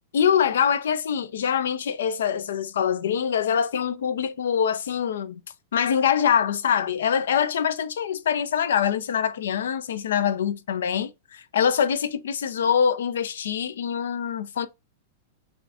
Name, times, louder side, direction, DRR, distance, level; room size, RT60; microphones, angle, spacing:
voice 1, 0.1-5.4 5.7-14.7, left 8 dB, 80° left, 0.3 m, -24 dB
2.5 x 2.4 x 3.3 m
hypercardioid pair, 125°, 0 cm